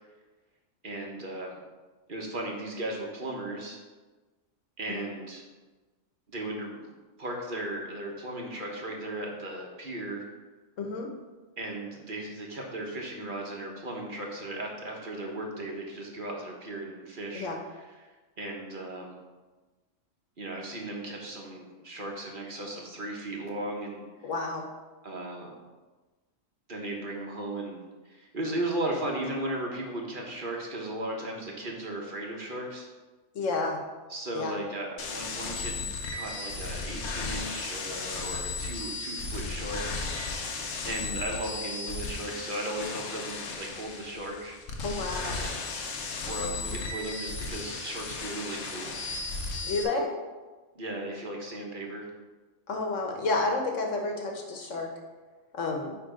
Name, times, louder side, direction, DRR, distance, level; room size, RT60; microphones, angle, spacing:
voice 1, 0.8-1.6 2.1-3.8 4.8-5.4 6.3-6.9 7.2-10.3 11.6-18.1 18.4-19.2 20.4-24.0 25.0-25.5 26.7-27.8 28.0-32.9 34.1-40.3 40.8-44.6 45.2-45.6 46.3-49.0 49.4-49.5 50.7-52.1, right 1 dB, 45° right, 0 dB, 1.3 m, -36 dB
voice 2, 10.8-11.1 17.3-17.6 24.2-24.6 33.3-33.8 34.3-34.6 44.8-45.3 49.6-50.1 52.7-54.9 55.5-55.9, left 3 dB, 90° left, 2 dB, 1.5 m, -30 dB
sound 1, 35.0-49.8, left 3 dB, 65° left, 1.2 m, -35 dB
9.5 x 3.3 x 5.0 m, 1.3 s
omnidirectional pair, 1.3 m